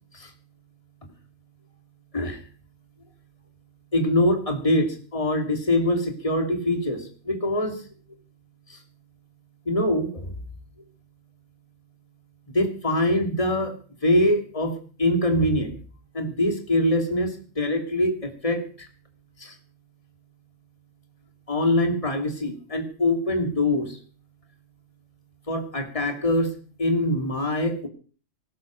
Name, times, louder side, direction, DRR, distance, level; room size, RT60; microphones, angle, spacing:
voice 1, 3.9-7.8 8.7-8.8 9.7-10.3 12.5-13.7 14.0-15.7 16.1-18.9 19.4-19.5 21.5-24.0 25.5-26.5 26.8-27.9, left 1 dB, 25° left, 3 dB, 2.8 m, -24 dB
19.0 x 9.9 x 6.4 m, 0.40 s
omnidirectional pair, 1.3 m